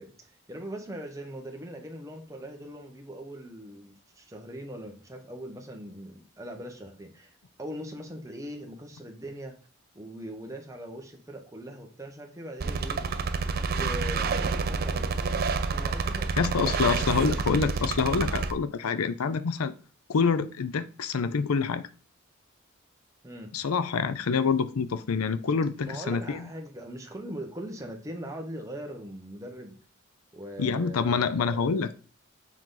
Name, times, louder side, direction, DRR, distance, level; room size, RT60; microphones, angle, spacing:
voice 1, 0.0-7.3 7.6-9.5 9.9-13.0 13.6-17.6 23.2-23.5 25.8-29.8 30.3-31.9, right 1 dB, 15° right, 0.9 m, -41 dB
sound 1, 12.6-18.5, right 4 dB, 45° right, 0.4 m, -28 dB
voice 2, 16.4-19.7 20.1-21.9 23.5-26.5 30.6-32.0, left 5 dB, 85° left, 0.5 m, -27 dB
7.4 x 3.9 x 3.8 m
head